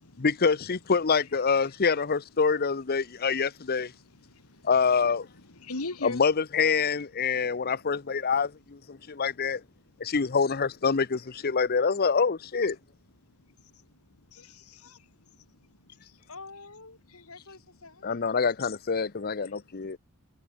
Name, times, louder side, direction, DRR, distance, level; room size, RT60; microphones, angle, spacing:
voice 1, 0.2-3.9 4.6-5.3 6.0-9.6 10.0-12.8 18.0-20.0, left 5 dB, 45° left, 0.7 m, -26 dB
voice 2, 3.0-6.2 7.2-8.3 9.0-9.3 9.6-10.1 13.2-16.3 17.1-17.3 19.4-19.6 19.9-20.0, left 2 dB, 85° left, 2.4 m, -45 dB
voice 3, 16.3-18.3, left 3 dB, 65° left, 4.7 m, -48 dB
head